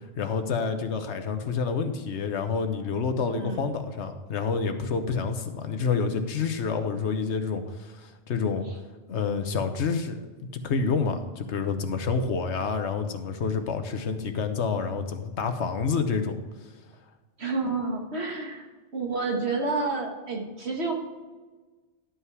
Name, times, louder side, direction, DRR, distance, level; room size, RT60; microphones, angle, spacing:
voice 1, 0.2-8.7 9.1-16.4, left 5 dB, 80° left, 7 dB, 1.2 m, -28 dB
voice 2, 3.2-3.7 8.6-8.8 17.4-18.7 18.9-20.9, right 3 dB, 70° right, 1 dB, 1.9 m, -29 dB
11.5 x 5.7 x 4.8 m, 1.3 s
omnidirectional pair, 1.2 m